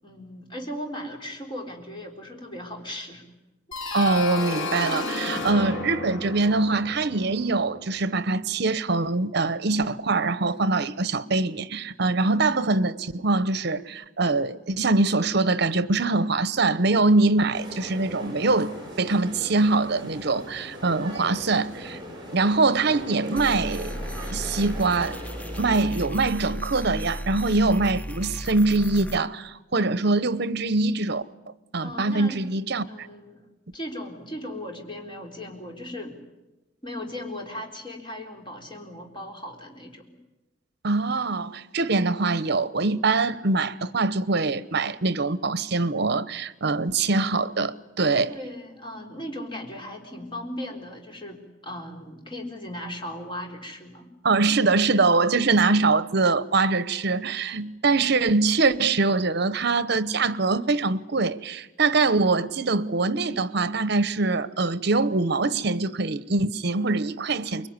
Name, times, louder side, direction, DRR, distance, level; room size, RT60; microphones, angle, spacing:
voice 1, 0.0-3.2 31.8-32.4 32.9-33.4 33.7-36.2 36.8-40.0 48.3-54.1, left 1 dB, 25° left, 4.0 m, -37 dB
sound 1, 3.7-8.4, left 3 dB, 85° left, 2.4 m, -33 dB
voice 2, 3.9-22.0 22.3-24.0 24.3-25.2 25.6-31.2 31.7-33.1 40.8-48.3 54.2-67.7, right 3 dB, 60° right, 0.9 m, -23 dB
sound 2, 17.5-25.9, equal, 25° right, 7.2 m, -39 dB
sound 3, 23.4-29.2, equal, 10° left, 0.8 m, -35 dB
24.5 x 22.0 x 9.7 m
head